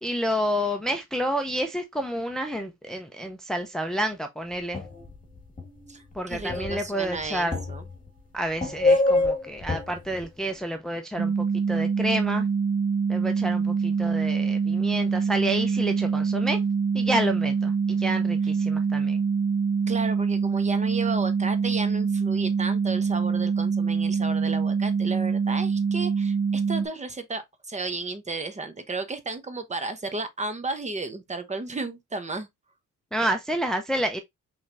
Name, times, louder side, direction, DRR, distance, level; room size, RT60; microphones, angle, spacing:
voice 1, 0.0-4.8 6.1-7.6 8.3-11.3 11.7-12.5 13.1-16.6 16.9-19.2 33.1-34.2, equal, ahead, 0.6 m, -29 dB
sound 1, 4.7-8.1 8.5-10.2, left 2 dB, 25° left, 1.7 m, -26 dB
voice 2, 5.9-7.8 19.9-32.5, right 3 dB, 25° right, 0.9 m, -33 dB
sound 2, 11.2-26.9, right 5 dB, 55° right, 0.7 m, -25 dB
5.5 x 3.3 x 2.5 m
cardioid pair, 90°, 30 cm